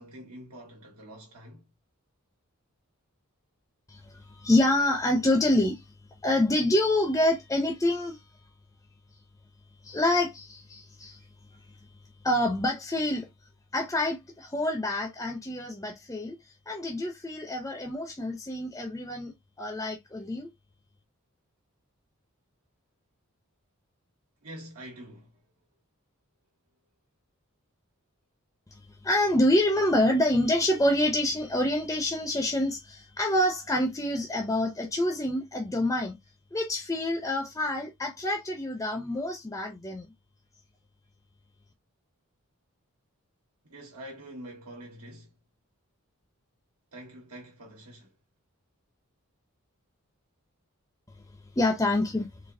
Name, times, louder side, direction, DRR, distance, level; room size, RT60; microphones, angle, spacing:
voice 1, 0.0-1.7 24.4-25.5 43.6-45.4 46.9-48.1, right 1 dB, 90° right, 1.4 m, -46 dB
voice 2, 3.9-5.8 6.2-8.2 9.8-11.2 11.5-11.6 12.2-13.3 13.7-16.4 16.7-20.5 28.7-36.2 36.5-40.1 51.4-52.4, left 1 dB, 15° left, 0.5 m, -27 dB
4.0 x 2.7 x 2.6 m
head